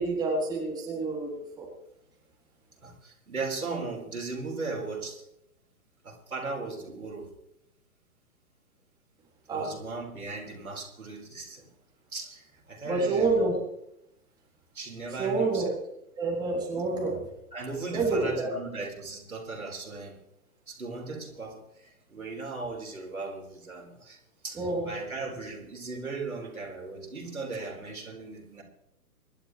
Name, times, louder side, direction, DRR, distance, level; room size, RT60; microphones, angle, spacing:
voice 1, 0.0-1.7 9.5-9.7 12.9-13.5 15.2-15.7 16.2-17.3 17.9-18.5 24.6-24.9, right 3 dB, 10° right, -3 dB, 3.2 m, -28 dB
voice 2, 2.8-5.2 6.0-7.3 9.5-11.7 12.1-13.6 14.7-15.7 17.5-20.2 20.7-24.2 24.4-28.6, right 3 dB, 70° right, 0 dB, 4.8 m, -37 dB
25.5 x 12.0 x 3.3 m, 0.81 s
figure-of-eight pair, 125°, 45 cm